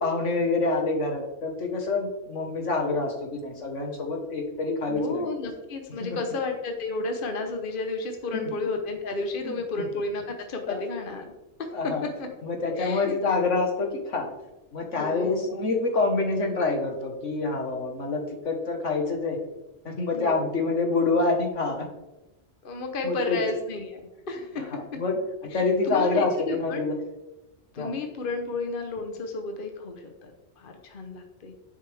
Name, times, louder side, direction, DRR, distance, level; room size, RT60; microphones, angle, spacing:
voice 1, 0.0-5.3 8.3-8.5 9.4-9.9 10.7-10.8 11.7-12.0 12.4-14.3 14.7-18.2 18.5-19.4 19.9-21.8 23.0-23.4 24.7-25.2 25.5-26.3 26.6-26.9 27.8-27.9, left 3 dB, 75° left, 3 dB, 1.9 m, -26 dB
voice 2, 4.9-11.3 11.6-12.3 12.8-13.2 15.0-15.5 20.1-20.4 22.6-24.0 24.3-25.0 25.5-26.8 27.7-31.5, left 3 dB, 45° left, 4 dB, 1.2 m, -32 dB
10.5 x 7.9 x 3.5 m, 1.0 s
omnidirectional pair, 1.3 m